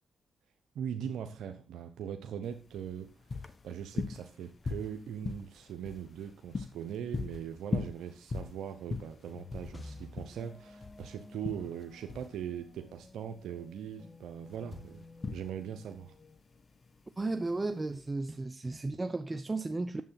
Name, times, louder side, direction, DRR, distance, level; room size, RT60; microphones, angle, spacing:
voice 1, 0.7-3.1 3.4-16.1, right 8 dB, 85° right, 7 dB, 0.9 m, -40 dB
sound 1, 2.4-18.1, left 4 dB, 45° left, 1.2 m, -41 dB
sound 2, 9.3-18.0, left 3 dB, 30° left, 2.0 m, -53 dB
voice 2, 17.2-20.0, right 2 dB, 25° right, 10 dB, 0.7 m, -34 dB
9.5 x 7.5 x 5.7 m, 0.34 s
supercardioid pair, 55°, 0 cm